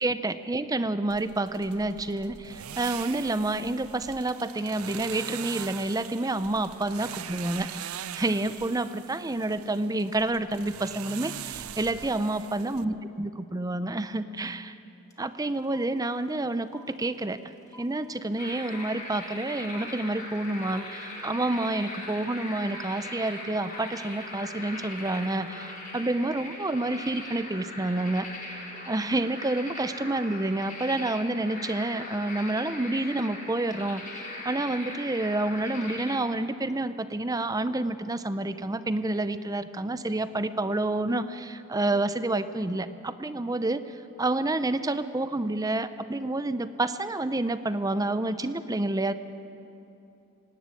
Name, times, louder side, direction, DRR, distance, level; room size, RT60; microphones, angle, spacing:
voice 1, 0.0-14.7 15.2-17.4 17.8-28.3 28.9-43.8 44.2-49.1, right 2 dB, 15° right, 12 dB, 0.6 m, -29 dB
sound 1, 1.1-12.8, right 10 dB, 90° right, 0.5 m, -42 dB
sound 2, 15.1-15.2 15.4-26.6, right 1 dB, 15° left, 2.0 m, -54 dB
sound 3, 18.4-36.2, left 2 dB, 40° left, 4.6 m, -40 dB
19.0 x 17.0 x 8.4 m, 2.8 s
head